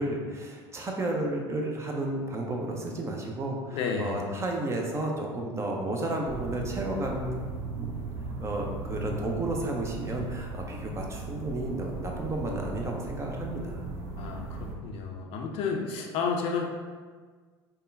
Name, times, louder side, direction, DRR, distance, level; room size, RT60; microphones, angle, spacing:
voice 1, 0.0-7.4 7.8-7.9 8.4-13.9, right 1 dB, 20° right, 0 dB, 0.5 m, -32 dB
voice 2, 3.7-4.2 14.2-16.7, left 5 dB, 45° left, 1 dB, 0.5 m, -31 dB
sound 1, 6.2-14.7, right 3 dB, 50° right, 0.8 m, -37 dB
5.2 x 2.2 x 2.6 m, 1.5 s
figure-of-eight pair, 70°, 14 cm